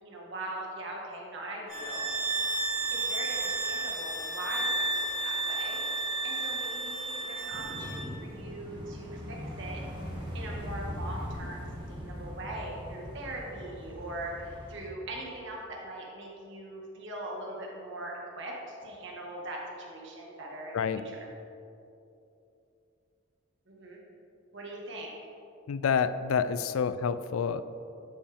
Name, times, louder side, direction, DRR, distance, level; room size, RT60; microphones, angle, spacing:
voice 1, 0.0-2.1 2.9-5.8 6.2-9.8 10.3-21.2 23.7-24.0 24.5-25.1, right 1 dB, 60° right, -2 dB, 1.6 m, -41 dB
sound 1, 1.7-8.1, right 2 dB, 80° right, 1.5 m, -32 dB
sound 2, 7.5-14.9, equal, 25° right, 1.5 m, -40 dB
voice 2, 25.7-27.6, left 6 dB, 85° left, 13 dB, 0.4 m, -28 dB
11.5 x 5.4 x 3.5 m, 2.7 s
head